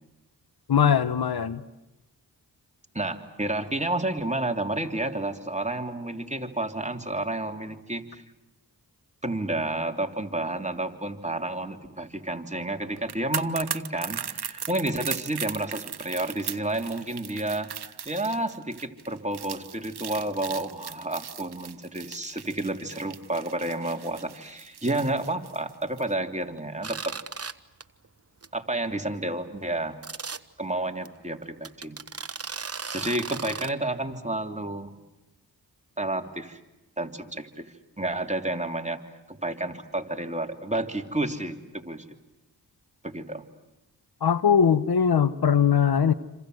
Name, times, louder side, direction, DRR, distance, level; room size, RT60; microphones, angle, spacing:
voice 1, 0.7-1.6 44.2-46.1, left 7 dB, 65° left, 15 dB, 1.2 m, -21 dB
voice 2, 2.9-8.2 9.2-27.2 28.5-30.0 30.6-32.0 32.9-34.9 36.0-36.6 37.0-39.0 39.3-42.0 43.0-43.4, right 1 dB, 15° right, 4 dB, 3.1 m, -30 dB
sound 1, 13.0-26.1 26.4-26.6, right 8 dB, 70° right, 1.2 m, -38 dB
sound 2, 26.8-27.5 27.8-28.1 28.4-28.5 28.8-28.9 30.0-30.4 31.0-31.1 31.6-33.7, right 5 dB, 35° right, 1.2 m, -36 dB
28.0 x 26.5 x 7.9 m, 0.97 s
cardioid pair, 40°, 40 cm